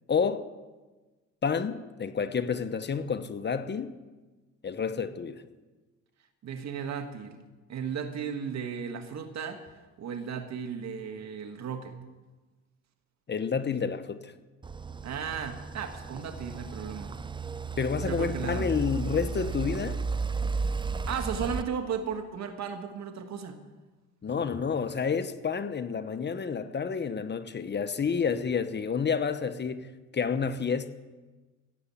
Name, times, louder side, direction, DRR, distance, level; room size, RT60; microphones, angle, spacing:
voice 1, 0.1-0.5 1.4-3.9 4.6-5.4 13.3-14.3 17.8-20.0 24.2-29.9 30.1-30.9, left 6 dB, 35° left, 1.0 m, -29 dB
voice 2, 6.4-7.4 7.7-9.7 10.0-11.9 15.0-17.2 18.0-18.8 21.1-23.6, right 7 dB, 60° right, 1.7 m, -35 dB
sound 1, 14.6-21.6, right 4 dB, 15° right, 0.5 m, -34 dB
17.0 x 7.0 x 8.6 m
cardioid pair, 90°, 30 cm